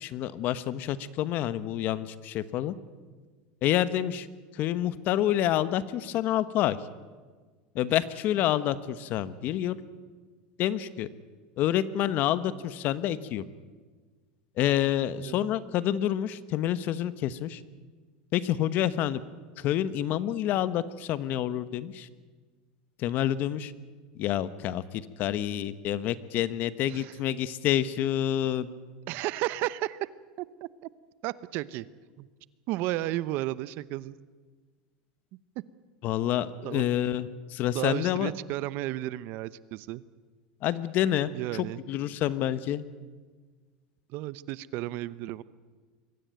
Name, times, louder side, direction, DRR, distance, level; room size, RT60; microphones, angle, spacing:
voice 1, 0.0-2.7 3.6-4.3 4.5-6.8 7.7-9.8 10.6-11.1 11.6-13.4 14.6-17.6 18.3-19.2 19.6-22.1 23.0-23.7 24.2-28.7 36.0-38.3 40.6-42.8, left 12 dB, 50° left, 15 dB, 1.1 m, -28 dB
voice 2, 29.1-30.1 30.4-30.7 31.2-31.9 32.2-32.3 32.7-34.2 36.6-36.9 37.7-40.0 41.3-41.8 44.1-45.4, right 16 dB, 55° right, 18 dB, 0.8 m, -33 dB
23.0 x 16.0 x 9.3 m, 1.4 s
supercardioid pair, 125°, 4 cm